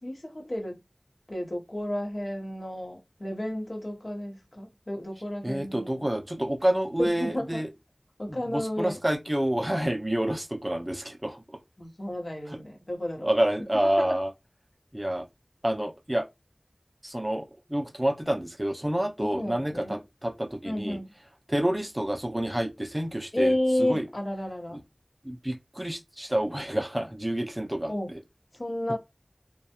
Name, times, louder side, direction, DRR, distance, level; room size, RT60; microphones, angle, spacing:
voice 1, 0.0-0.8 1.3-6.0 7.0-7.6 8.2-9.0 11.8-13.3 14.0-14.2 19.2-20.0 20.6-21.1 23.3-24.8 27.9-28.1 28.5-29.0, left 1 dB, 65° left, 0.9 m, -31 dB
voice 2, 5.4-7.7 8.3-11.4 13.2-14.3 14.9-15.3 15.6-16.3 17.0-21.0 21.5-24.1 25.2-28.2, right 1 dB, 20° right, 0.4 m, -28 dB
2.2 x 2.0 x 2.8 m
wide cardioid pair, 45°, 0 cm